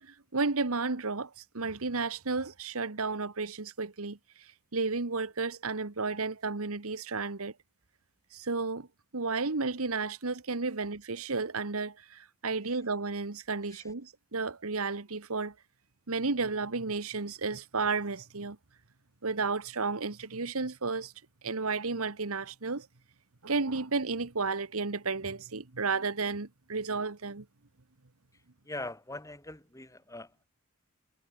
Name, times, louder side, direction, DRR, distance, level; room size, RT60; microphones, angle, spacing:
voice 1, 0.0-7.5 8.3-8.9 9.1-15.5 16.1-18.6 19.2-21.1 21.4-22.9 23.4-27.4, right 4 dB, 75° right, 1.4 m, -32 dB
voice 2, 28.6-30.5, left 2 dB, 15° left, 4.3 m, -42 dB
head